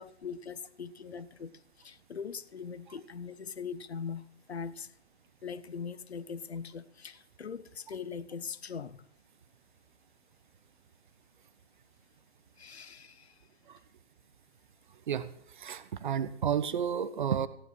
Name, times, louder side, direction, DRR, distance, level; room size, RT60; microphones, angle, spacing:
voice 1, 0.0-4.9 5.4-9.0 12.6-13.4, left 6 dB, 65° left, 1.0 m, -41 dB
voice 2, 15.1-17.5, right 8 dB, 45° right, 1.0 m, -32 dB
15.0 x 9.6 x 6.1 m
figure-of-eight pair, 135°, 34 cm